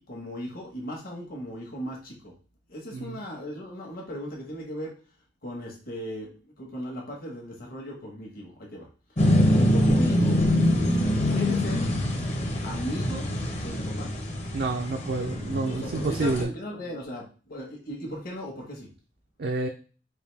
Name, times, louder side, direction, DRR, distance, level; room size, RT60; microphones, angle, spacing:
voice 1, 0.0-2.3 2.7-4.9 5.4-8.9 9.5-10.4 11.3-11.8 12.6-13.3 13.6-14.1 15.7-18.9, equal, 55° left, -1 dB, 1.3 m, -37 dB
sound 1, 9.2-16.4, left 1 dB, 35° left, 0.8 m, -24 dB
voice 2, 14.5-16.5 19.4-19.7, right 3 dB, 55° right, 4 dB, 0.4 m, -29 dB
4.8 x 2.6 x 3.3 m, 0.36 s
head